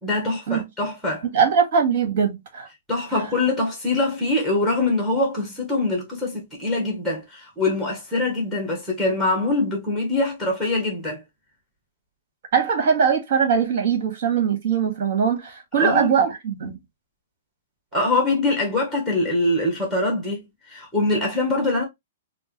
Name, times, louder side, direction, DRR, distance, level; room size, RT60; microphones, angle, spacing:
voice 1, 0.0-1.2 2.9-11.2 15.8-16.1 17.9-21.8, left 2 dB, ahead, 1.1 m, -23 dB
voice 2, 1.3-2.7 12.5-16.8, right 6 dB, 50° right, 1.8 m, -21 dB
4.4 x 2.2 x 3.1 m
hypercardioid pair, 170°, 0 cm